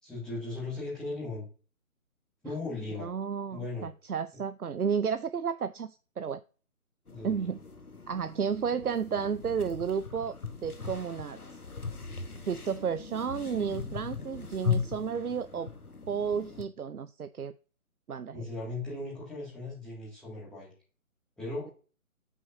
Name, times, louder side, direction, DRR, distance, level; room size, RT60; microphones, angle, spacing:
voice 1, 0.0-1.4 2.4-3.1 3.5-3.9 7.1-7.5 18.3-20.7 21.4-21.7, left 2 dB, ahead, -8 dB, 2.1 m, -37 dB
voice 2, 3.0-6.4 7.2-7.6 8.1-10.4 10.6-11.4 12.5-15.7 16.1-17.5 18.1-18.4, right 6 dB, 90° right, 12 dB, 0.6 m, -32 dB
sound 1, 7.1-16.7, left 6 dB, 90° left, 1.2 m, -38 dB
7.8 x 6.1 x 2.7 m, 0.37 s
figure-of-eight pair, 150°, 43 cm